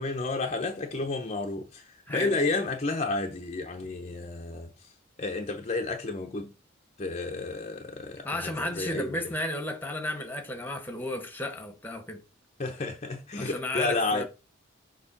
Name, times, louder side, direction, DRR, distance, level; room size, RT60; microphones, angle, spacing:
voice 1, 0.0-1.8 2.1-4.7 5.2-6.5 7.0-9.2 12.6-14.2, left 3 dB, 35° left, 0.7 m, -31 dB
voice 2, 2.1-2.4 8.2-12.2 13.4-14.2, left 1 dB, 10° left, 1.0 m, -33 dB
7.0 x 3.0 x 5.8 m
head